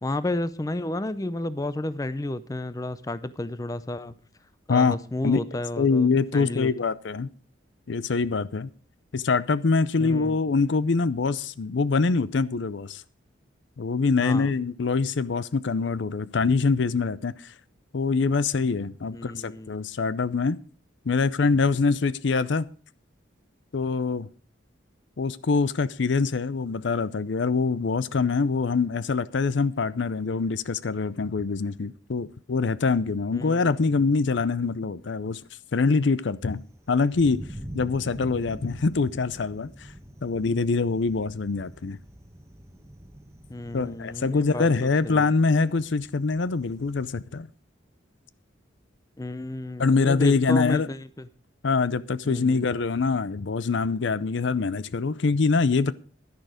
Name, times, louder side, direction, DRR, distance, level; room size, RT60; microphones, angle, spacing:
voice 1, 0.0-4.1 4.7-6.1 6.3-6.7 10.0-10.4 14.2-14.5 19.1-19.7 33.3-33.7 43.5-45.3 49.2-51.3 52.3-52.6, left 1 dB, 20° left, 0.5 m, -32 dB
voice 2, 5.8-7.3 7.9-8.7 9.1-13.0 13.8-17.5 17.9-20.6 21.1-22.7 23.7-24.3 25.2-35.4 35.7-36.6 36.9-37.4 37.7-39.9 40.2-42.0 43.7-47.5 49.8-50.9 51.6-55.9, left 4 dB, 70° left, 0.5 m, -24 dB
Thunder, 36.5-47.1, equal, 15° right, 1.1 m, -44 dB
11.5 x 10.5 x 5.0 m
head